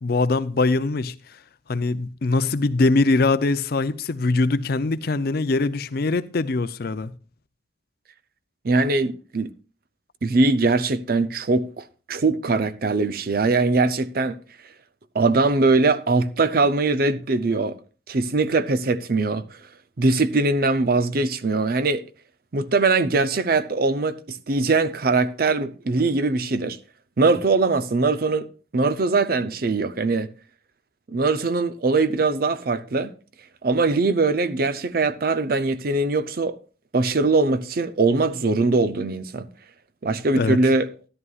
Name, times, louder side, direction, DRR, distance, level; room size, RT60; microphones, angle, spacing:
voice 1, 0.0-1.1 1.7-7.1 40.4-40.6, left 3 dB, 50° left, 0.5 m, -22 dB
voice 2, 8.6-9.5 10.2-14.4 15.1-17.8 18.1-19.4 20.0-22.0 22.5-26.8 27.2-28.5 28.7-30.3 31.1-33.1 33.6-36.6 36.9-39.5 40.0-40.9, right 3 dB, 50° right, 0.5 m, -21 dB
13.5 x 11.0 x 2.4 m
head